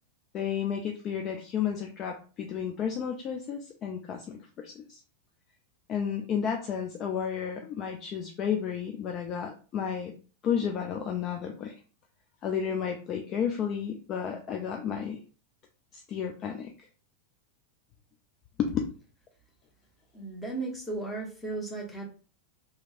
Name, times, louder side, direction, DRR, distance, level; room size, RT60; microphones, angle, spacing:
voice 1, 0.3-5.0 5.9-10.1 10.4-11.8 12.4-15.2 15.9-16.9 18.6-18.7, left 8 dB, 30° left, 0.4 m, -32 dB
voice 2, 20.1-22.0, right 3 dB, 10° left, 1.0 m, -35 dB
2.8 x 2.7 x 2.4 m
figure-of-eight pair, 90°, 0 cm